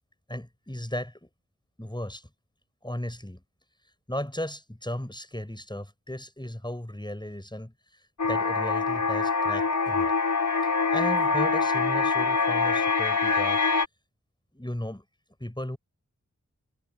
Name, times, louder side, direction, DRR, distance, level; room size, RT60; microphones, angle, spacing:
voice 1, 0.3-1.3 1.8-2.3 2.8-3.4 4.1-10.1 10.9-13.6 14.5-15.0 15.4-15.8, left 1 dB, 15° left, 6.4 m, -35 dB
sound 1, 8.2-13.9, left 4 dB, 70° left, 4.0 m, -24 dB
wide cardioid pair, 50°, 31 cm